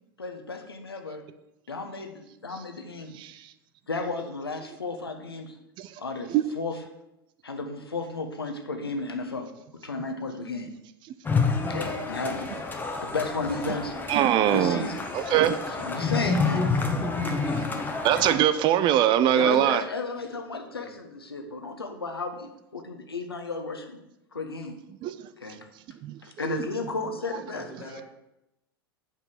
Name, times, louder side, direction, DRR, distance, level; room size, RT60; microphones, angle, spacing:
voice 1, 0.2-1.2 1.7-3.1 3.9-5.6 6.0-6.7 7.4-9.5 9.8-10.7 11.7-14.0 14.5-15.0 15.8-16.7 17.5-17.6 19.3-24.0 24.3-24.7 25.4-25.6 26.2-27.9, left 3 dB, 90° left, 5 dB, 1.2 m, -33 dB
voice 2, 3.1-3.5 5.8-6.0 6.3-6.4 14.1-14.8 15.1-15.6 18.0-19.8 25.0-25.3 26.0-26.5, right 11 dB, 40° right, 13 dB, 0.7 m, -23 dB
sound 1, 11.2-18.3, left 4 dB, 15° left, 1.2 m, -28 dB
voice 3, 27.5-28.0, left 3 dB, 40° left, 1 dB, 2.1 m, -43 dB
8.0 x 5.6 x 6.1 m, 0.87 s
hypercardioid pair, 95°, 12 cm